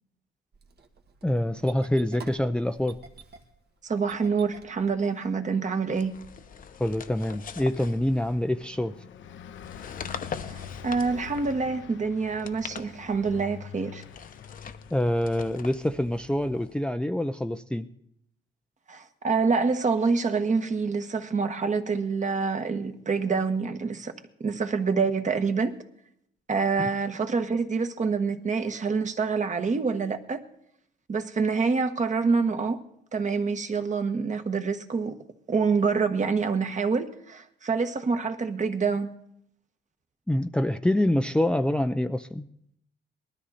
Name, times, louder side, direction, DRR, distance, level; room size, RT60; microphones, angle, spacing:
Engine starting, 0.5-5.5, right 4 dB, 55° right, 1.6 m, -49 dB
voice 1, 1.2-3.0 6.8-8.9 14.9-17.9 40.3-42.5, left 1 dB, 5° left, 0.5 m, -26 dB
voice 2, 3.8-6.1 10.5-14.0 18.9-24.1 24.4-25.7 26.5-30.4 31.1-32.8 33.1-35.2 35.5-39.1, right 4 dB, 40° right, 1.4 m, -26 dB
Car passing by, 5.2-16.2, left 8 dB, 75° left, 0.9 m, -46 dB
sound 1, 5.9-8.7 9.5-11.7 12.3-13.4 14.0-16.8, left 6 dB, 45° left, 0.9 m, -42 dB
19.5 x 13.0 x 4.2 m
cardioid pair, 90°, 20 cm